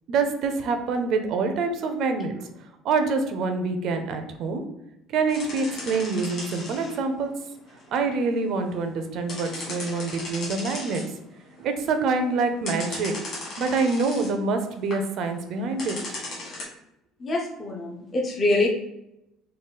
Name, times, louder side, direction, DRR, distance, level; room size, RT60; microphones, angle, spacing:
voice 1, 0.1-2.5 2.8-4.6 5.1-7.3 7.9-11.0 11.6-13.1 13.6-16.0, right 4 dB, 45° right, 6 dB, 0.4 m, -26 dB
sound 1, 5.3-7.1 7.4-8.8 9.3-11.2 11.5-12.1 12.7-14.3 14.7-15.0 15.8-16.6, left 2 dB, 35° left, 1.3 m, -37 dB
voice 2, 17.2-18.7, left 2 dB, 20° left, -1 dB, 0.4 m, -25 dB
3.7 x 2.3 x 3.8 m, 0.86 s
cardioid pair, 180°, 0 cm